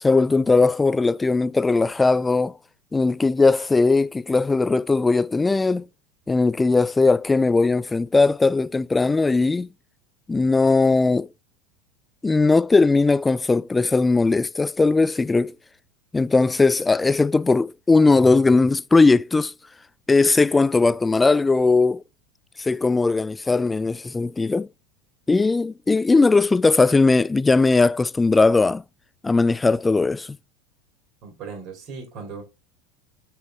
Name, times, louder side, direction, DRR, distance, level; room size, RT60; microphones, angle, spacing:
voice 1, 0.0-2.5 2.9-5.8 6.3-9.7 10.3-11.3 12.2-15.5 16.1-19.5 20.1-22.0 22.6-24.7 25.3-28.8 29.2-30.3, left 3 dB, 15° left, 0.3 m, -19 dB
voice 2, 31.2-32.4, right 5 dB, 50° right, 2.8 m, -37 dB
6.1 x 4.6 x 3.5 m
hypercardioid pair, 95°, 0 cm